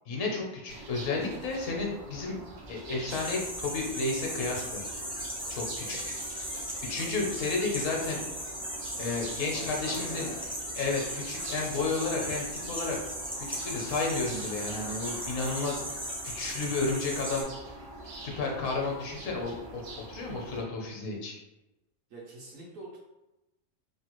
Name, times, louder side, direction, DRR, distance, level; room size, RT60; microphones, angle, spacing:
voice 1, 0.1-2.4 2.7-4.8 5.5-6.1 6.9-8.2 9.0-10.3 10.7-13.0 13.5-17.5 18.0-19.8 20.1-21.3, left 3 dB, 70° left, 0 dB, 1.0 m, -32 dB
sound 1, 0.7-20.6, right 2 dB, 85° right, 0.4 m, -45 dB
sound 2, 3.1-17.4, equal, 10° right, 0.3 m, -37 dB
voice 2, 9.5-10.6 22.1-23.0, right 2 dB, 70° right, -4 dB, 1.0 m, -45 dB
3.0 x 2.2 x 2.9 m, 0.98 s
omnidirectional pair, 1.5 m